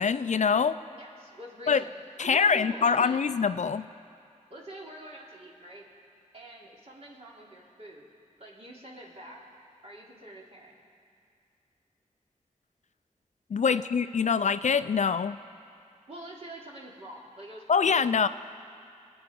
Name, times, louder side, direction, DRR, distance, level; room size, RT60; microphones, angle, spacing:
voice 1, 0.0-0.8 1.7-1.8 2.2-3.9 13.5-15.4 17.7-18.3, left 6 dB, 60° left, 13 dB, 0.4 m, -24 dB
voice 2, 0.9-3.2 4.5-5.9 6.3-8.1 8.4-9.5 9.8-10.8 13.6-13.9 16.1-18.3, right 1 dB, 50° right, -3 dB, 3.3 m, -45 dB
23.5 x 8.9 x 5.3 m, 2.6 s
cardioid pair, 50°, 14 cm